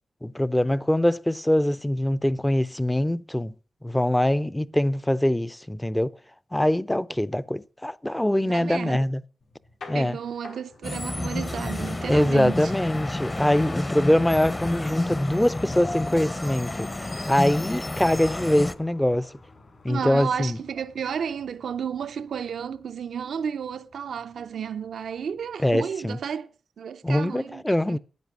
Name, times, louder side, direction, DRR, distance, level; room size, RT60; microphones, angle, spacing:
voice 1, 0.2-3.5 3.8-6.1 6.5-9.2 9.9-10.2 12.1-19.3 19.8-20.6 25.6-26.2 27.0-28.0, left 1 dB, 10° left, 0.5 m, -23 dB
voice 2, 8.5-9.0 9.9-12.7 19.9-26.5 26.8-28.0, right 7 dB, 85° right, 0.5 m, -32 dB
sound 1, 9.4-25.6, left 3 dB, 85° left, 4.7 m, -54 dB
sound 2, 10.8-18.7, left 2 dB, 25° left, 0.9 m, -30 dB
sound 3, 14.7-22.9, left 3 dB, 55° left, 3.5 m, -51 dB
10.5 x 9.1 x 6.0 m
cardioid pair, 80°, 0 cm